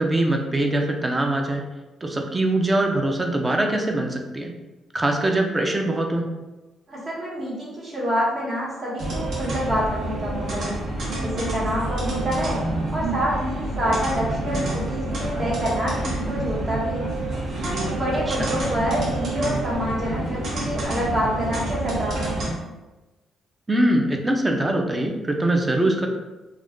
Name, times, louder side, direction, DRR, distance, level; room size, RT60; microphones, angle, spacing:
voice 1, 0.0-1.7 2.0-4.5 4.9-6.2 18.3-18.6 23.7-26.1, right 1 dB, 20° right, 2 dB, 0.4 m, -22 dB
voice 2, 6.9-10.8 11.2-12.6 12.9-17.1 17.6-22.3, equal, 45° right, -6 dB, 1.1 m, -27 dB
sound 1, 9.0-22.5, right 2 dB, 65° right, 0.9 m, -28 dB
2.4 x 2.2 x 3.5 m, 1.1 s
cardioid pair, 90°, 0 cm